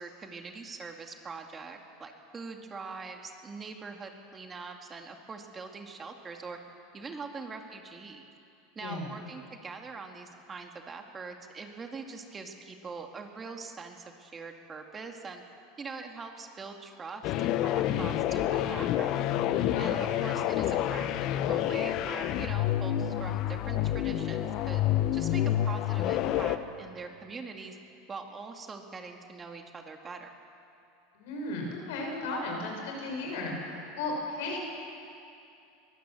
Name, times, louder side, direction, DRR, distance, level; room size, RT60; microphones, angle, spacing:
voice 1, 0.0-6.6 6.9-8.2 8.8-15.4 15.8-19.2 19.8-21.1 21.5-24.8 25.1-27.8 28.1-30.3, right 4 dB, 25° right, 4 dB, 2.1 m, -43 dB
voice 2, 8.8-9.1 19.7-20.1 31.1-34.6, left 2 dB, 75° left, 1 dB, 5.8 m, -35 dB
sound 1, 17.2-26.6, left 12 dB, 50° left, 0.9 m, -28 dB
22.0 x 15.0 x 7.7 m, 2.6 s
supercardioid pair, 110°, 0 cm